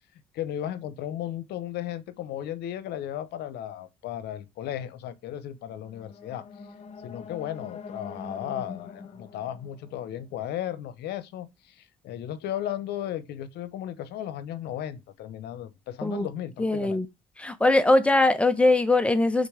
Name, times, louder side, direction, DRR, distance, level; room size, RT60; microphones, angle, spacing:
voice 1, 0.3-6.5 7.0-17.0, left 11 dB, 75° left, 0.9 m, -35 dB
sound 1, 5.7-10.8, left 5 dB, 40° left, 1.0 m, -44 dB
voice 2, 16.6-17.1 17.4-19.5, left 2 dB, 5° left, 1.0 m, -21 dB
5.3 x 3.9 x 4.9 m
cardioid pair, 110°, 17 cm